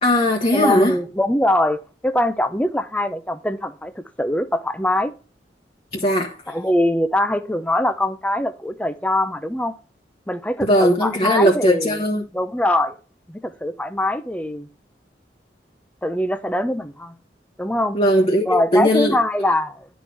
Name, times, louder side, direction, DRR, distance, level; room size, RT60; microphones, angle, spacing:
voice 1, 0.0-1.0 6.0-6.4 10.6-12.2 17.9-19.1, equal, 35° left, 1.2 m, -18 dB
voice 2, 0.5-3.9 4.2-5.1 6.5-9.7 10.3-12.0 12.3-13.0 13.3-14.7 16.0-17.1 17.6-18.0 18.5-19.9, left 1 dB, 10° left, 0.6 m, -22 dB
11.0 x 4.4 x 4.6 m
head